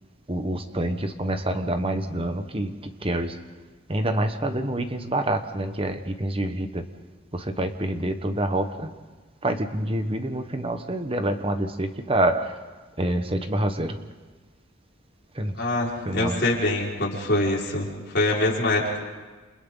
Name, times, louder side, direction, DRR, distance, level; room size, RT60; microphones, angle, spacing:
voice 1, 0.3-3.4 3.9-6.8 7.3-8.9 9.4-12.6 13.0-14.0 15.3-15.6 16.0-16.5, right 1 dB, 25° right, 7 dB, 1.2 m, -27 dB
voice 2, 15.6-19.0, left 2 dB, 50° left, -4 dB, 5.2 m, -24 dB
30.0 x 28.5 x 4.0 m, 1.3 s
head